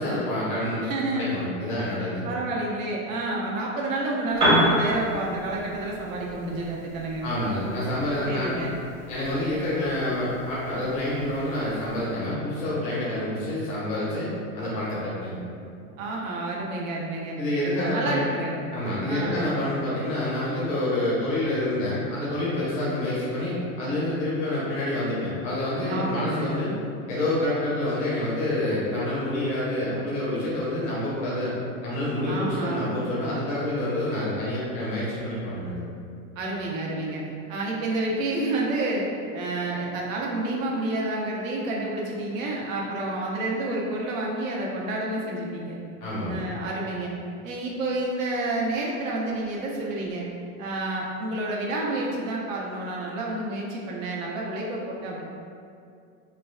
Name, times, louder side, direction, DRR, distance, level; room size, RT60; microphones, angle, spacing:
voice 1, 0.0-0.8 1.1-2.2 7.2-8.5 9.1-14.3 14.5-15.4 17.4-18.2 18.7-26.7 27.1-31.5 31.8-35.8 46.0-46.3, left 1 dB, 20° left, -8 dB, 0.5 m, -27 dB
voice 2, 0.8-1.2 2.2-7.3 8.3-8.8 16.0-17.4 17.7-18.6 19.1-19.5 25.9-26.5 32.3-32.9 36.4-37.2 37.5-45.8 46.3-47.1 47.4-50.2 50.6-55.2, right 2 dB, 75° right, -3 dB, 0.7 m, -29 dB
Piano, 4.3-12.1, equal, 20° right, 0.7 m, -30 dB
3.2 x 2.2 x 2.3 m, 2.4 s
supercardioid pair, 170°, 40 cm